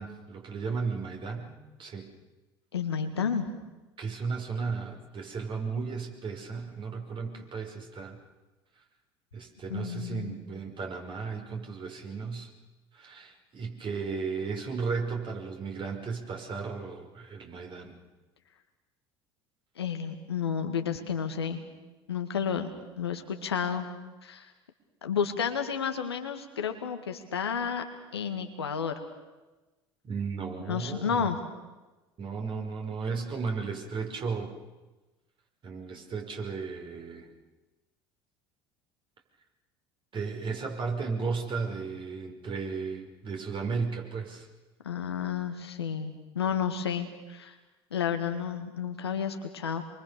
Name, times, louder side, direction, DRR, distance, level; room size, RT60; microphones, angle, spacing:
voice 1, 0.0-1.5 1.8-2.1 4.0-8.2 9.3-12.5 12.9-18.0 30.0-31.3 32.2-34.5 35.6-37.3 40.1-44.5, right 5 dB, 40° right, 2 dB, 5.6 m, -34 dB
voice 2, 2.7-3.5 9.7-10.4 19.8-21.6 22.1-23.9 24.2-24.5 25.0-27.8 28.1-28.9 30.7-31.4 44.8-47.5 47.9-49.8, left 7 dB, 80° left, 6 dB, 2.1 m, -31 dB
27.0 x 23.5 x 6.9 m, 1.1 s
figure-of-eight pair, 65°, 13 cm